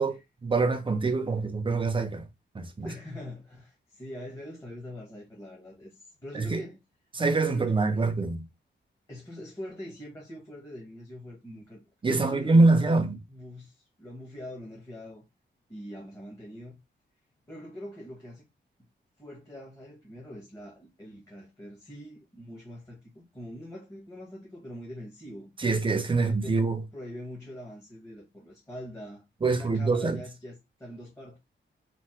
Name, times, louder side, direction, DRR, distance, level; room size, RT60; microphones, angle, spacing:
voice 1, 0.0-2.2 2.5-2.9 6.4-6.6 7.2-8.4 12.0-13.1 25.6-26.8 29.4-30.2, right 3 dB, 25° right, 0.6 m, -24 dB
voice 2, 2.8-6.8 7.5-8.0 9.1-15.2 15.7-16.8 17.5-18.4 18.8-18.9 19.2-25.5 26.1-26.6 26.9-31.4, left 1 dB, 15° left, 1.3 m, -43 dB
3.4 x 2.7 x 4.4 m
wide cardioid pair, 155°, 20 cm